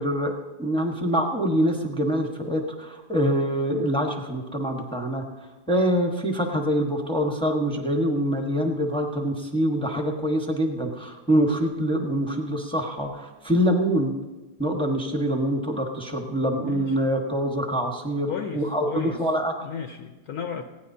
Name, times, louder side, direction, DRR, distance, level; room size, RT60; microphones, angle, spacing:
voice 1, 0.0-5.2 5.7-14.1 14.6-19.5, equal, 5° left, 1 dB, 1.0 m, -25 dB
voice 2, 16.2-17.0 18.3-19.2 19.6-20.6, left 7 dB, 65° left, 5 dB, 1.1 m, -34 dB
19.5 x 16.5 x 2.8 m, 1.2 s
omnidirectional pair, 2.0 m